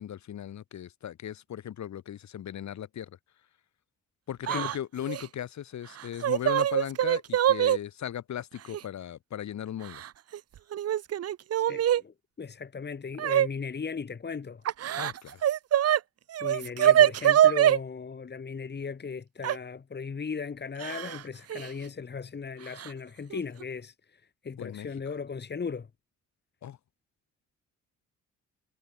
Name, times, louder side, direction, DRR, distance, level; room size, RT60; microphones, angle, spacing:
voice 1, 0.0-3.1 4.3-10.0 15.0-15.4 24.6-24.9 26.6-26.8, left 10 dB, 65° left, 6.2 m, -37 dB
Yell / Crying sobbing, 4.4-4.8 5.1-5.3 6.0-7.8 8.7-8.8 9.8-10.4 10.7-12.0 13.2-13.5 14.7-16.0 16.3-17.8 19.4-19.6 20.8-21.2 21.5-21.7 22.8-22.9 23.3-23.6, right 11 dB, 55° right, 0.9 m, -24 dB
voice 2, 11.6-14.6 16.4-25.9, left 5 dB, 35° left, 3.1 m, -37 dB
cardioid pair, 90°, 30 cm